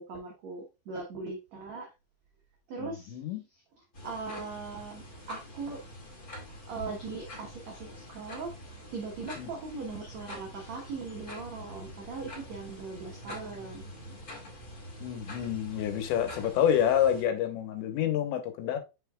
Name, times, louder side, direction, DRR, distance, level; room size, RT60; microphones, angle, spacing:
voice 1, 0.0-1.9 2.7-3.2 4.0-5.8 6.6-8.5 8.9-13.8, right 4 dB, 90° right, 1.5 m, -39 dB
voice 2, 2.8-3.4 9.4-9.5 15.0-18.8, left 10 dB, 85° left, 3.3 m, -28 dB
sound 1, 3.9-17.2, equal, 30° left, 1.8 m, -45 dB
7.6 x 5.8 x 2.3 m
omnidirectional pair, 5.0 m